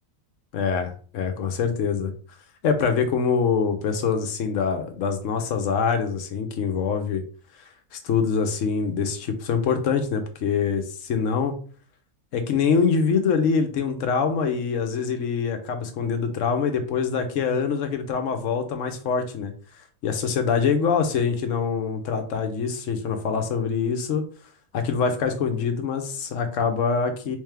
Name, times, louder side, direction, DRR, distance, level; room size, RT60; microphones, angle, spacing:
voice 1, 0.5-2.1 2.6-7.2 7.9-11.5 12.3-24.2 24.7-27.4, left 6 dB, 65° left, 7 dB, 1.0 m, -24 dB
3.4 x 3.2 x 3.3 m, 0.42 s
omnidirectional pair, 1.5 m